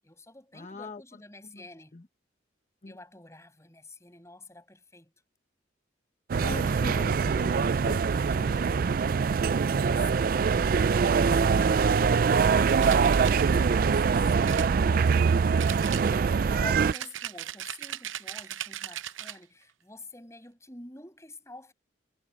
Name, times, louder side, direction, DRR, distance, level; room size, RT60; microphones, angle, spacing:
voice 1, 0.0-2.0 2.8-5.1 6.9-7.3 9.6-10.4 10.9-15.2 15.9-21.7, left 2 dB, 15° left, 7.3 m, -48 dB
voice 2, 0.5-1.2 1.5-1.6 1.9-2.0 2.8-2.9 6.4-8.9, left 2 dB, 35° left, 0.9 m, -41 dB
sound 1, 6.3-16.9, right 5 dB, 45° right, 0.3 m, -23 dB
sound 2, 12.7-13.5 14.4-15.3 15.6-16.4 16.9-19.4, right 11 dB, 85° right, 0.7 m, -38 dB
head